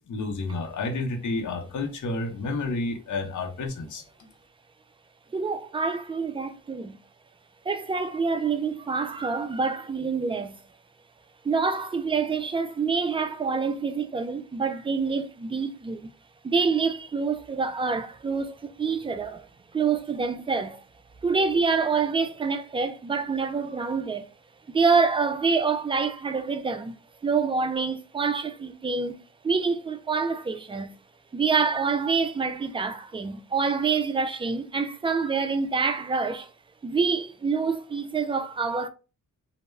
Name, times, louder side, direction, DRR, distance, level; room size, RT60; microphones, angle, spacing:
voice 1, 0.1-4.0, left 3 dB, 65° left, 0.7 m, -30 dB
voice 2, 5.3-7.0 7.7-10.6 11.4-16.1 16.4-20.8 21.2-24.2 24.7-27.0 27.2-29.1 29.4-30.9 31.3-36.5 36.8-38.9, right 5 dB, 15° right, 0.3 m, -26 dB
2.2 x 2.1 x 3.1 m
cardioid pair, 75°, 33 cm